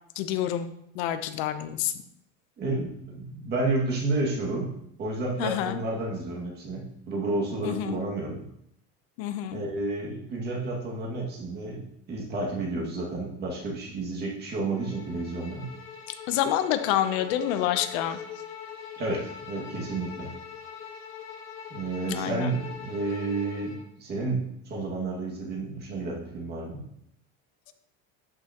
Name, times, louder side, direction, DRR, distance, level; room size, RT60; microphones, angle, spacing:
voice 1, 0.2-1.9 5.4-5.8 7.6-8.0 9.2-9.6 16.3-18.2 22.0-22.5, left 11 dB, 85° left, 10 dB, 0.9 m, -28 dB
voice 2, 2.6-8.4 9.5-15.7 19.0-20.3 21.7-26.8, right 2 dB, 30° right, -2 dB, 2.1 m, -31 dB
Bowed string instrument, 14.7-23.9, left 7 dB, 40° left, 1.4 m, -42 dB
12.0 x 6.1 x 3.0 m, 0.76 s
cardioid pair, 170°, 32 cm